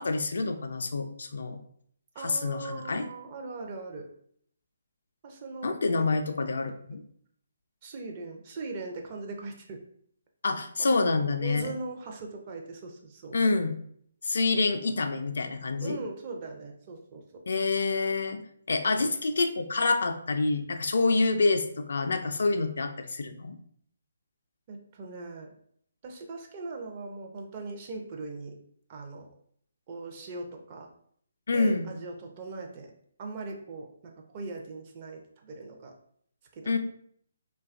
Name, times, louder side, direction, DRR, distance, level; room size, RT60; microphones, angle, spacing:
voice 1, 0.0-1.6 2.2-3.1 5.6-7.0 10.4-11.7 13.3-13.8 14.2-16.0 17.5-18.4 18.7-23.6 31.5-31.9 36.7-36.8, left 3 dB, 65° left, 7 dB, 0.3 m, -27 dB
voice 2, 2.1-4.1 5.2-6.1 7.8-9.8 10.8-11.0 11.4-13.4 15.8-17.4 24.7-25.5 26.0-28.6 28.9-29.3 29.9-30.9 31.5-32.9 33.2-35.9 36.5-36.8, right 3 dB, 35° right, 1 dB, 0.5 m, -40 dB
2.6 x 2.2 x 2.4 m, 0.64 s
figure-of-eight pair, 145°, 0 cm